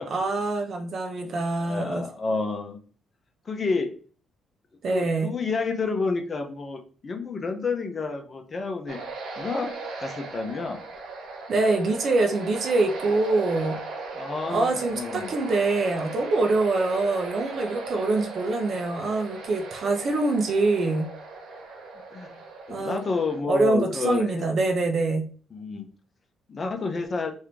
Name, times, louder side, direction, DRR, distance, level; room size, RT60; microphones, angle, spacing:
voice 1, 0.1-2.0 4.8-5.3 11.5-13.8 14.5-21.1 22.7-23.1 23.5-25.3, right 3 dB, 55° right, 1.2 m, -24 dB
voice 2, 1.6-2.8 3.4-3.9 4.9-9.0 9.4-9.7 10.0-10.8 14.1-15.3 22.1-24.4 25.5-25.9 26.5-27.3, left 4 dB, 40° left, 1.2 m, -29 dB
sound 1, 8.9-23.4, right 3 dB, 80° right, 1.8 m, -38 dB
4.3 x 3.7 x 3.4 m
cardioid pair, 90°, 0 cm